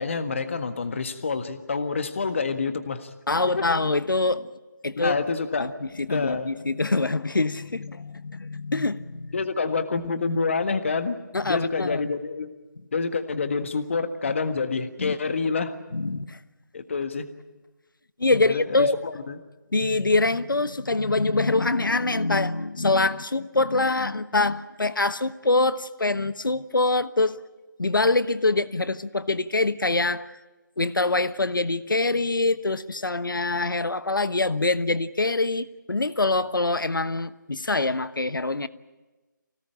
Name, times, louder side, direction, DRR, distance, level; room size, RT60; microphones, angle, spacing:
voice 1, 0.0-3.1 3.5-3.6 5.0-5.7 6.1-6.5 9.3-11.2 11.5-12.5 12.9-15.8 16.7-17.3 18.4-19.4, left 4 dB, 40° left, 8 dB, 1.6 m, -27 dB
voice 2, 3.3-4.5 4.8-5.2 5.6-9.3 11.3-12.0 15.0-15.1 15.9-16.4 18.2-19.0 19.7-27.4 27.8-30.4 30.8-38.7, left 2 dB, 85° left, 14 dB, 1.2 m, -24 dB
25.0 x 18.0 x 8.8 m, 1.2 s
figure-of-eight pair, 165°, 11 cm